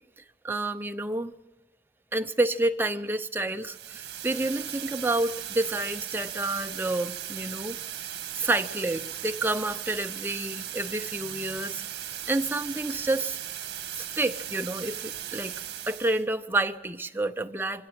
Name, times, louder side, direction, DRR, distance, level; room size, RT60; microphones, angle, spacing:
voice 1, 0.4-1.3 2.1-7.8 8.4-11.8 12.3-13.4 13.9-15.6 15.9-17.9, right 2 dB, 10° right, 8 dB, 0.7 m, -29 dB
sound 1, 3.6-16.2, right 10 dB, 65° right, 1.9 m, -37 dB
24.5 x 15.5 x 8.8 m, 1.0 s
head